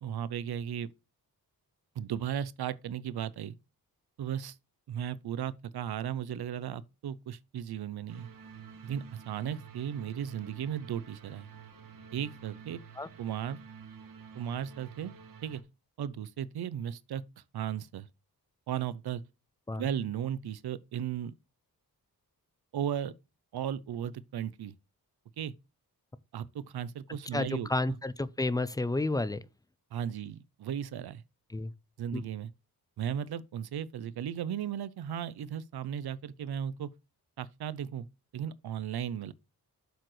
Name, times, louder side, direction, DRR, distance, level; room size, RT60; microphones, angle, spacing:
voice 1, 0.0-0.9 2.0-3.5 4.2-4.6 4.9-8.3 8.8-11.5 12.1-12.8 13.2-13.6 14.3-15.1 15.4-15.6 16.0-17.2 17.5-18.1 18.7-19.2 19.7-21.3 22.7-23.1 23.5-24.7 25.4-25.5 26.3-28.0 29.9-31.2 32.0-32.5 33.0-36.9 37.4-38.1 38.3-39.3, right 9 dB, 85° right, 0.6 m, -36 dB
sound 1, 8.1-15.6, right 6 dB, 60° right, 1.3 m, -50 dB
voice 2, 27.3-29.4 31.5-31.7 32.1-32.2, left 2 dB, 10° left, 0.4 m, -31 dB
7.9 x 6.7 x 3.1 m
wide cardioid pair, 125°, 37 cm